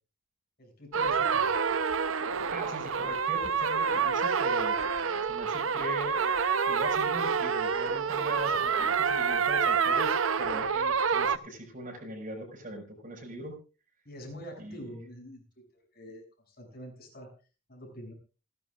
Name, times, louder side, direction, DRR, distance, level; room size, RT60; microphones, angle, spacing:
voice 1, 0.6-2.0 8.3-8.9 14.1-15.4 15.9-17.3 17.7-18.1, equal, 50° left, 1 dB, 7.1 m, -46 dB
sound 1, 0.9-11.4, right 6 dB, 80° right, 0.7 m, -27 dB
voice 2, 2.1-4.8 5.3-6.2 6.7-13.5 14.6-14.8, right 1 dB, 40° right, -1 dB, 5.4 m, -40 dB
28.5 x 11.0 x 2.5 m, 0.34 s
head